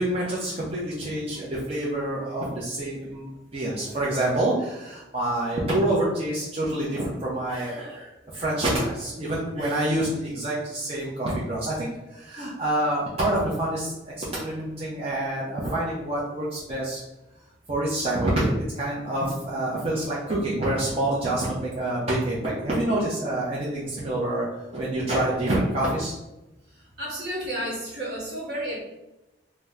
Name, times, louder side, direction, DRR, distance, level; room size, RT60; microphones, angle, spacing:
voice 1, 0.0-17.0 17.7-24.4 24.7-26.1, right 1 dB, 35° right, -7 dB, 0.6 m, -27 dB
voice 2, 27.0-28.8, equal, 60° right, -4 dB, 1.1 m, -31 dB
2.8 x 2.1 x 3.4 m, 0.98 s
head